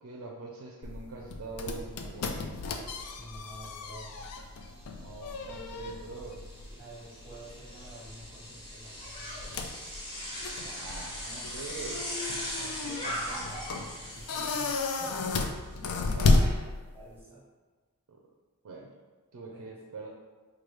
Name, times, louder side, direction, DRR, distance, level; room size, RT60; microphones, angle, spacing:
voice 1, 0.0-2.4 4.9-6.4 10.6-12.3 12.6-12.7 16.1-16.7 18.1-18.2 18.6-18.9 19.3-20.1, right 3 dB, 80° right, -2 dB, 0.5 m, -43 dB
sound 1, 0.8-17.2, left 3 dB, 75° left, 0.4 m, -33 dB
Bicycle, 1.8-1.9 2.3-16.0, equal, 20° left, 0.9 m, -41 dB
voice 2, 3.1-4.1 6.7-9.6 12.6-15.5 16.9-17.5 19.5-19.7, right 1 dB, 10° right, -7 dB, 0.7 m, -49 dB
4.7 x 2.3 x 3.1 m, 1.4 s
head